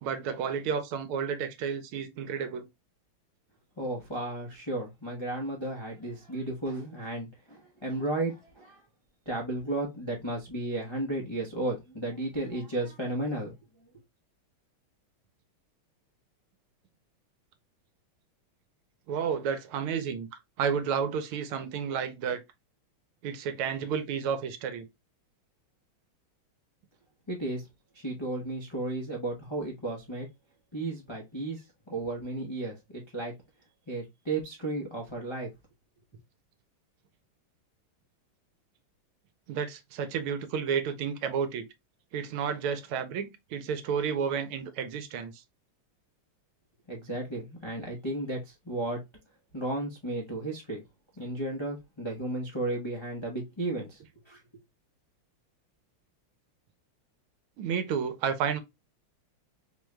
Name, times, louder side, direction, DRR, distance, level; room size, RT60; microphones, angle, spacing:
voice 1, 0.0-2.7 19.1-22.4 23.2-24.9 39.5-41.7 42.1-45.4 57.6-58.6, right 7 dB, 85° right, 1.5 m, -31 dB
voice 2, 3.8-8.8 9.3-13.5 27.3-27.6 27.9-30.3 30.7-31.6 31.9-33.3 33.9-35.5 46.9-49.0 49.5-50.8 51.2-54.0 54.3-54.4, right 2 dB, 40° left, 0.3 m, -34 dB
4.5 x 2.3 x 3.1 m
omnidirectional pair, 2.4 m